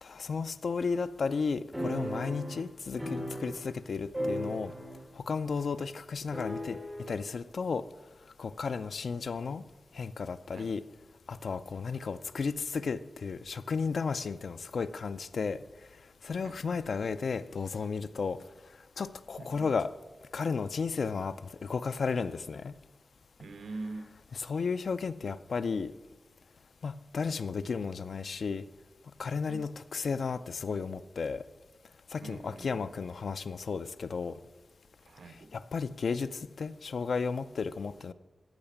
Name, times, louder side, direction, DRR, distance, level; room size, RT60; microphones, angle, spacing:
voice 1, 0.0-4.7 5.2-6.8 7.1-7.9 8.4-9.6 9.9-10.9 11.3-15.6 16.2-18.4 19.0-19.9 20.3-22.7 24.3-25.9 26.8-28.6 29.2-31.4 32.1-34.4 35.5-38.1, left 5 dB, 65° left, 0.4 m, -33 dB
sound 1, 1.7-3.9 4.1-5.1 5.4-5.5 6.3-7.1, equal, 5° right, 3.2 m, -36 dB
voice 2, 23.4-24.2 29.5-29.6 32.2-32.8 35.0-35.5, right 3 dB, 85° right, 0.7 m, -43 dB
14.0 x 5.8 x 7.1 m
wide cardioid pair, 165°, 0 cm